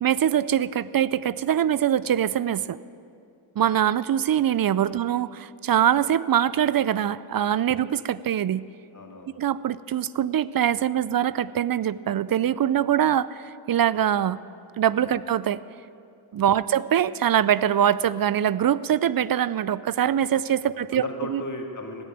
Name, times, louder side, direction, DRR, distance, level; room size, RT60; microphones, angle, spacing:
voice 1, 0.0-2.8 3.6-8.7 9.4-14.4 14.8-15.6 16.3-21.0 21.3-21.4, right 10 dB, 50° right, 18 dB, 0.4 m, -23 dB
voice 2, 8.9-9.3 15.0-15.1 16.5-16.6 20.6-22.1, left 2 dB, 40° left, 1 dB, 2.3 m, -37 dB
16.5 x 6.7 x 9.1 m, 2.4 s
cardioid pair, 50°, 47 cm